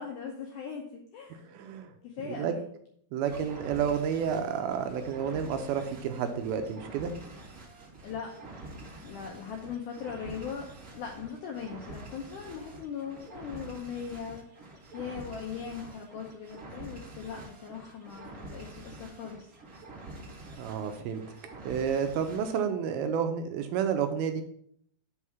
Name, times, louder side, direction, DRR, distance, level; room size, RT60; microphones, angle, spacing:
voice 1, 0.0-1.5 2.0-2.6 8.0-8.3 9.0-19.5, left 7 dB, 80° left, 1 dB, 1.8 m, -40 dB
voice 2, 1.4-1.9 2.3-2.5 3.1-7.1 20.6-21.2 21.6-24.4, right 7 dB, 80° right, 7 dB, 2.4 m, -30 dB
sound 1, 3.3-22.6, right 2 dB, 40° right, 1.3 m, -47 dB
5.5 x 4.8 x 5.7 m, 0.65 s
omnidirectional pair, 4.5 m